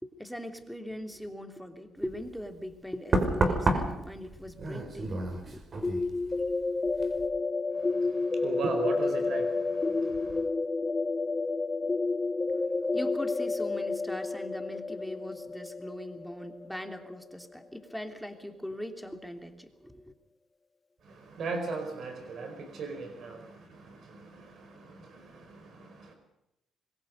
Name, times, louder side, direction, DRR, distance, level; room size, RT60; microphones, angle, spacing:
voice 1, 0.0-5.6 12.9-20.1, equal, ahead, 3.1 m, -41 dB
Knock, 2.1-2.3 3.1-6.6 6.9-7.3, right 2 dB, 40° right, 5.5 m, -30 dB
sound 1, 5.8-17.5, left 3 dB, 25° left, 0.7 m, -30 dB
voice 2, 7.7-10.5 21.0-26.1, right 3 dB, 65° right, 4.8 m, -38 dB
26.0 x 22.5 x 5.3 m
cardioid pair, 90°, 0 cm